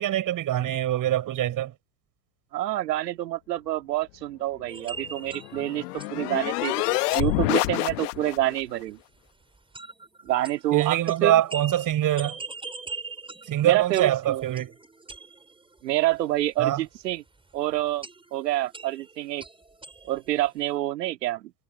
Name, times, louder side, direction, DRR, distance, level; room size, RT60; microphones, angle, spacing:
voice 1, 0.0-1.7 10.7-12.4 13.5-14.7 16.6-16.8, right 12 dB, 40° right, 5.8 m, -24 dB
voice 2, 2.5-9.0 10.2-11.4 13.6-14.4 15.8-17.2 17.5-19.4 20.0-21.5, right 15 dB, 80° right, 2.2 m, -27 dB
sound 1, 4.7-8.3 8.5-8.6 8.9-9.0 9.5-15.8 16.1-16.2 18.0-20.4, right 4 dB, 10° right, 5.3 m, -42 dB
sound 2, 5.0-8.6, left 21 dB, 70° left, 1.1 m, -27 dB
hypercardioid pair, 95°, 48 cm